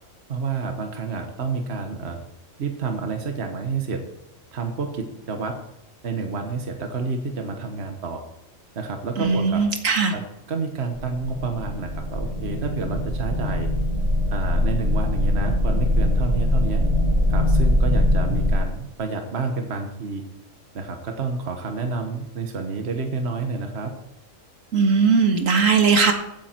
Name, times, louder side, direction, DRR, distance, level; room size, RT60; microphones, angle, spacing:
voice 1, 0.3-2.2 2.6-4.0 4.5-5.6 6.0-8.2 8.7-9.6 10.1-10.2 10.5-13.7 14.3-16.8 17.3-20.2 20.7-23.9, right 4 dB, 55° right, 4 dB, 1.5 m, -29 dB
voice 2, 9.2-10.1 24.7-26.1, right 5 dB, 75° right, 4 dB, 2.0 m, -19 dB
sound 1, 11.0-18.5, left 1 dB, 25° right, 1.5 m, -22 dB
15.5 x 9.3 x 4.5 m, 0.89 s
omnidirectional pair, 1.4 m